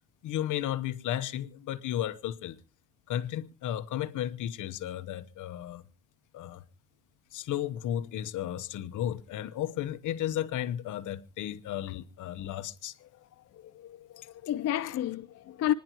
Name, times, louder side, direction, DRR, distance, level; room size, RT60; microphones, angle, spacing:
voice 1, 0.2-2.6 3.1-5.8 6.3-6.6 7.3-13.0 14.2-14.3, left 11 dB, 65° left, 1.1 m, -34 dB
voice 2, 13.6-15.7, left 12 dB, 50° left, 0.6 m, -31 dB
26.5 x 10.5 x 3.0 m
cardioid pair, 95°, 33 cm